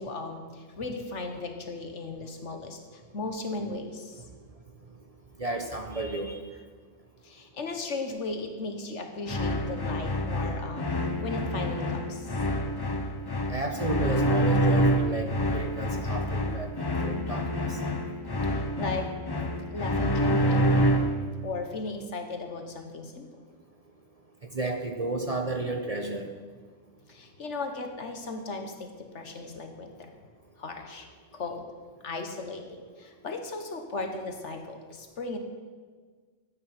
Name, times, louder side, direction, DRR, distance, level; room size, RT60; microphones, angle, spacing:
voice 1, 0.0-4.2 7.2-12.3 18.5-19.1 19.7-21.1 21.4-23.3 27.1-30.1 30.6-31.1 31.3-31.7 32.0-35.4, left 3 dB, 65° left, 5 dB, 1.6 m, -36 dB
voice 2, 5.4-6.4 13.5-17.8 24.5-26.3, right 2 dB, 35° right, 4 dB, 0.9 m, -32 dB
sound 1, 9.3-21.3, equal, 25° left, 0.6 m, -27 dB
13.0 x 9.3 x 6.1 m, 1.5 s
omnidirectional pair, 1.3 m